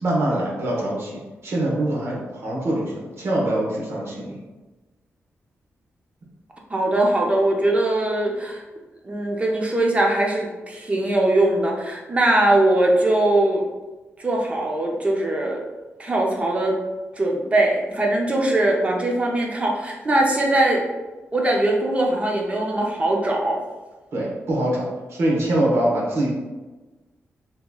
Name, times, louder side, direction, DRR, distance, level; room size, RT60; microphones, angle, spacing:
voice 1, 0.0-4.4 24.1-26.3, right 1 dB, 60° right, -4 dB, 1.0 m, -24 dB
voice 2, 6.7-8.6 9.0-13.6 14.2-15.6 16.0-16.8 17.2-20.8 21.3-23.6, right 1 dB, 25° right, 0 dB, 0.4 m, -21 dB
3.7 x 2.9 x 2.3 m, 1.2 s
wide cardioid pair, 140°, 5 cm